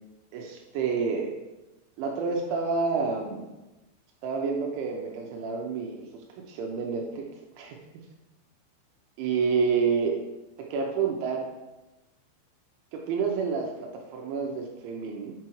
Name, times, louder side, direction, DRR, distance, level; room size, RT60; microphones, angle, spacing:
voice 1, 0.3-1.3 2.0-3.5 4.2-7.3 7.6-7.8 9.2-10.2 10.6-11.5 12.9-15.3, right 5 dB, 80° right, 1 dB, 2.9 m, -29 dB
7.5 x 6.0 x 3.1 m, 1.0 s
omnidirectional pair, 5.8 m